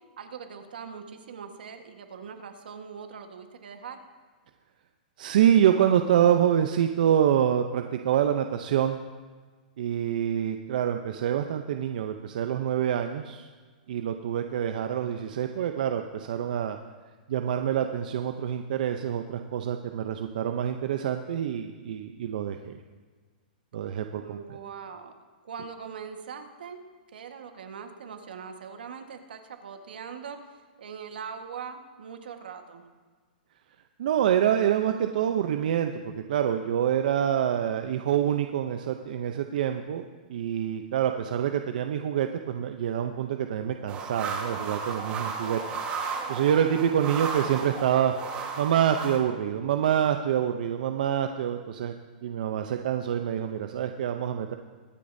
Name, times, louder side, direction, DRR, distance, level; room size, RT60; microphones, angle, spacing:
voice 1, 0.2-4.0 24.2-25.1 25.4-26.8 27.1-30.4 30.8-32.8, right 6 dB, 85° right, 5 dB, 1.4 m, -41 dB
voice 2, 5.2-9.0 9.8-13.5 13.9-16.8 17.3-22.8 23.7-24.4 34.0-40.0 40.3-45.6 46.3-48.1 48.6-51.9 52.2-54.5, right 9 dB, 60° right, 6 dB, 0.6 m, -26 dB
sound 1, 43.9-49.2, right 5 dB, 25° right, 1.5 m, -34 dB
23.0 x 8.4 x 2.7 m, 1.5 s
hypercardioid pair, 160°, 5 cm